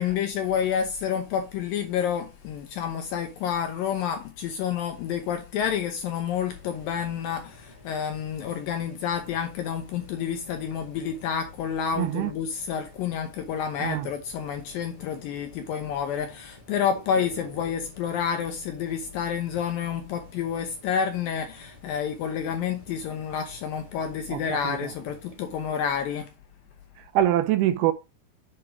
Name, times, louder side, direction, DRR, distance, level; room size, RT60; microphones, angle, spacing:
voice 1, 0.0-26.3, left 8 dB, 80° left, 2.1 m, -29 dB
sound 1, 6.5-25.6, right 2 dB, 45° right, 0.4 m, -51 dB
voice 2, 12.0-12.3 13.8-14.1 24.3-24.9 27.1-27.9, right 13 dB, 80° right, 2.4 m, -24 dB
7.5 x 4.7 x 4.8 m
omnidirectional pair, 4.9 m